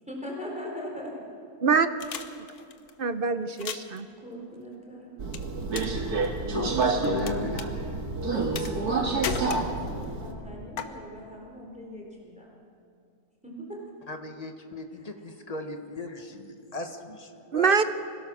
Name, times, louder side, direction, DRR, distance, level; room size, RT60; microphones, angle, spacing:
voice 1, 0.1-1.1 4.2-5.1 8.2-12.5 13.4-13.5 14.9-15.1, left 1 dB, 5° right, -2 dB, 3.9 m, -40 dB
sound 1, 2.0-2.9 3.5-4.0 5.3-6.0 6.2-7.3 7.6-7.7 8.5-8.9 9.2-10.0 10.8-10.9, left 6 dB, 70° left, 1.5 m, -34 dB
voice 2, 3.0-4.1 17.5-17.9, right 5 dB, 50° right, 10 dB, 0.7 m, -24 dB
Subway metro underground, 5.2-10.3, right 3 dB, 75° right, 2.1 m, -28 dB
voice 3, 6.5-8.0 14.1-17.7, left 2 dB, 25° left, 5 dB, 1.3 m, -37 dB
25.5 x 17.0 x 6.3 m, 2.4 s
omnidirectional pair, 1.7 m